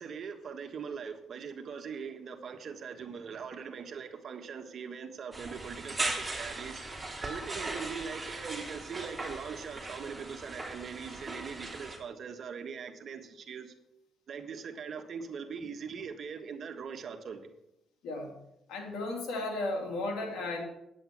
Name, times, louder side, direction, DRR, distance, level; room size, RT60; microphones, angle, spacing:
voice 1, 0.0-6.9 7.2-13.7 14.3-17.4, right 6 dB, 55° right, 6 dB, 1.4 m, -41 dB
sound 1, 5.3-12.0, right 2 dB, 15° right, 3.0 m, -38 dB
voice 2, 18.7-20.6, left 2 dB, 85° left, 1 dB, 2.7 m, -34 dB
10.0 x 8.4 x 6.1 m, 0.86 s
cardioid pair, 90°, 0 cm